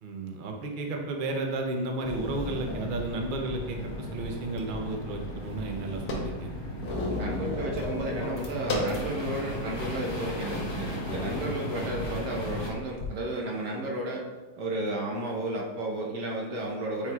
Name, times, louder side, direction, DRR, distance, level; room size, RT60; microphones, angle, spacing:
voice 1, 0.0-6.5 6.8-7.2, right 2 dB, 50° right, 2 dB, 0.6 m, -33 dB
sound 1, 2.0-12.7, left 1 dB, 20° left, 0.8 m, -36 dB
sound 2, 2.3-2.9 3.6-4.6 4.9-5.0 5.3-9.1 9.6-9.7 10.4-10.5 11.0-11.5 12.5-13.1, left 2 dB, 65° left, 1.5 m, -34 dB
voice 2, 7.2-14.3 14.6-17.1, right 1 dB, 75° right, -1 dB, 1.6 m, -33 dB
9.1 x 4.7 x 2.3 m, 1.2 s
omnidirectional pair, 1.8 m